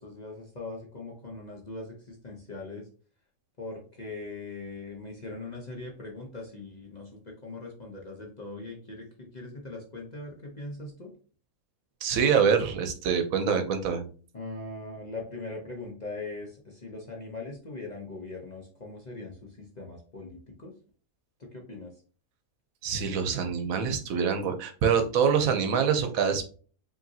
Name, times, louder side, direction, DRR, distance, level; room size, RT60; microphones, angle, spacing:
voice 1, 0.0-2.9 3.6-11.1 14.3-20.7 21.4-21.9, left 2 dB, 40° left, 0 dB, 0.7 m, -41 dB
voice 2, 12.0-14.0 22.8-26.4, right 6 dB, 75° right, 6 dB, 1.1 m, -25 dB
5.0 x 2.9 x 2.7 m, 0.40 s
omnidirectional pair, 1.5 m